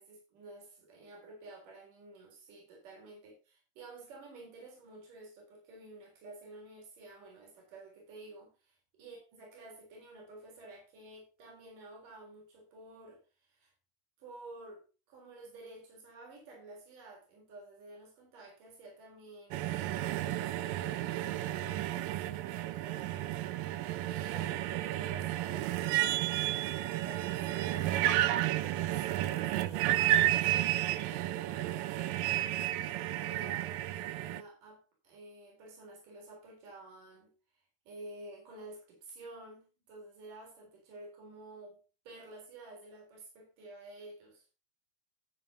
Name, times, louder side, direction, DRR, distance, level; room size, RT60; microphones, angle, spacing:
voice 1, 0.0-13.7 14.2-23.4 24.0-41.8 42.1-44.4, right 2 dB, 70° right, 0 dB, 5.4 m, -51 dB
sound 1, 19.5-34.4, right 14 dB, 90° right, 2.4 m, -32 dB
12.5 x 9.1 x 2.8 m, 0.31 s
omnidirectional pair, 3.9 m